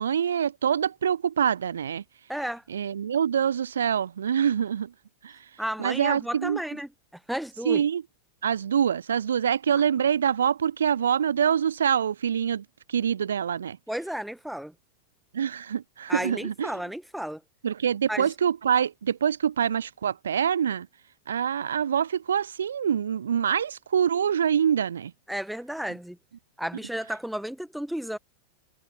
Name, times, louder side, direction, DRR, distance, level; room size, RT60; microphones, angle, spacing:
voice 1, 0.0-2.0 2.7-4.9 5.2-5.4 5.8-6.6 7.7-8.0 8.4-13.8 15.3-16.7 17.6-20.9 21.3-25.1, right 8 dB, 65° right, 0.6 m, -25 dB
voice 2, 2.3-2.6 5.6-7.8 9.8-9.9 13.9-14.7 16.1-17.4 18.1-18.3 25.3-26.2 26.6-28.2, equal, ahead, 1.2 m, -33 dB
figure-of-eight pair, 90°, 0 cm